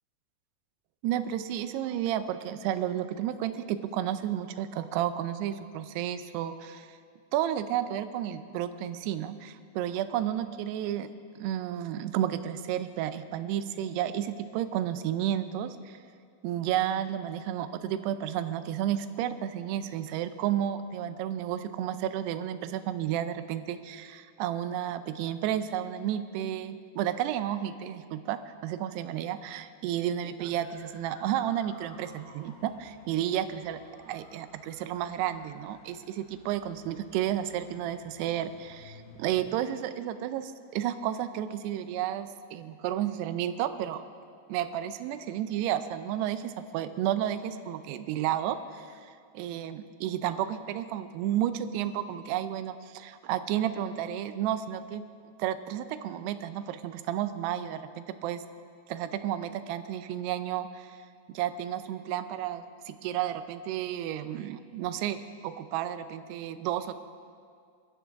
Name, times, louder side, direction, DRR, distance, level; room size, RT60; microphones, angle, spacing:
voice 1, 1.0-7.0 7.3-11.1 11.4-16.0 16.4-44.0 44.5-55.0 55.4-57.8 58.2-58.4 58.9-61.0 61.3-66.9, right 11 dB, 80° right, 11 dB, 2.6 m, -32 dB
sound 1, 30.5-39.6, left 2 dB, 85° left, 3.8 m, -55 dB
22.0 x 14.5 x 3.5 m, 2.2 s
omnidirectional pair, 4.9 m